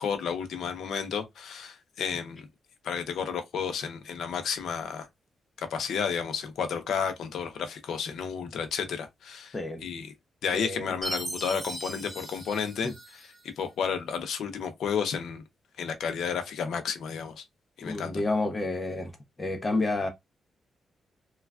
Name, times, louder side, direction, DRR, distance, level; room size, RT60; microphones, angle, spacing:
voice 1, 0.0-2.5 2.8-5.1 5.6-9.6 9.8-10.1 10.4-13.2 13.6-15.4 15.8-17.4 17.8-18.2, left 6 dB, 85° left, 0.6 m, -32 dB
voice 2, 9.5-9.8 10.5-10.9 12.8-12.9 17.8-19.1 19.4-20.1, left 2 dB, 25° left, 0.6 m, -29 dB
Chime, 11.0-13.5, right 1 dB, 10° right, 1.1 m, -38 dB
3.2 x 2.3 x 2.3 m
cardioid pair, 95°, 0 cm